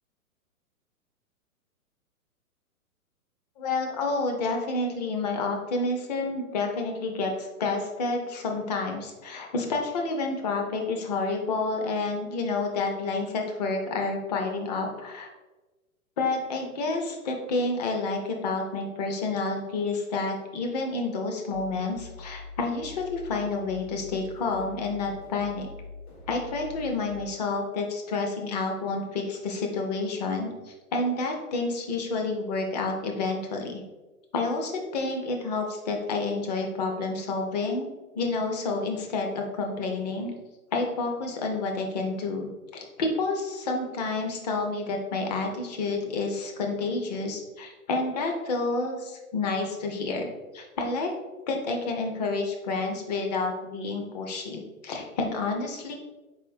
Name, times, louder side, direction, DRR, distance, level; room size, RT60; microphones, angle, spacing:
voice 1, 3.6-15.3 16.2-25.7 26.3-33.8 34.3-37.9 38.1-40.3 40.7-50.3 50.5-51.1 51.5-55.9, left 3 dB, 30° left, 2 dB, 0.5 m, -29 dB
sound 1, 21.5-27.3, left 3 dB, 80° left, 1.5 m, -44 dB
4.1 x 3.5 x 2.6 m, 1.2 s
figure-of-eight pair, 120°, 44 cm